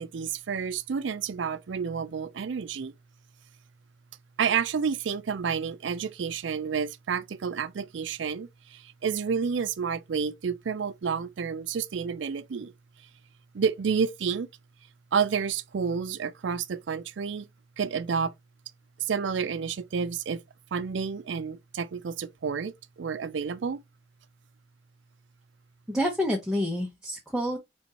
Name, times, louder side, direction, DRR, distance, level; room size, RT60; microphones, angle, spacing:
voice 1, 0.0-2.9 4.4-12.7 13.5-14.5 15.1-17.5 17.8-18.3 19.1-20.4 20.7-23.8, right 6 dB, 65° right, 0.4 m, -30 dB
voice 2, 25.9-27.6, equal, 5° right, 0.7 m, -28 dB
4.3 x 3.4 x 2.9 m
head